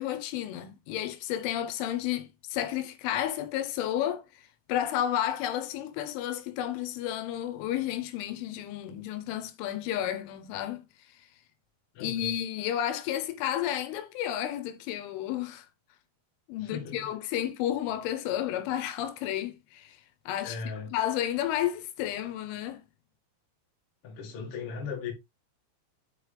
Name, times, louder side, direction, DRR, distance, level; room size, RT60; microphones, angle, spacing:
voice 1, 0.0-4.3 4.7-10.8 12.0-15.7 16.5-20.0 20.3-20.6 20.9-22.8, left 11 dB, 80° left, 3.2 m, -31 dB
voice 2, 11.9-12.3 16.6-17.1 20.4-20.9 24.0-25.1, left 5 dB, 65° left, 1.3 m, -38 dB
8.1 x 5.1 x 3.4 m
omnidirectional pair, 5.8 m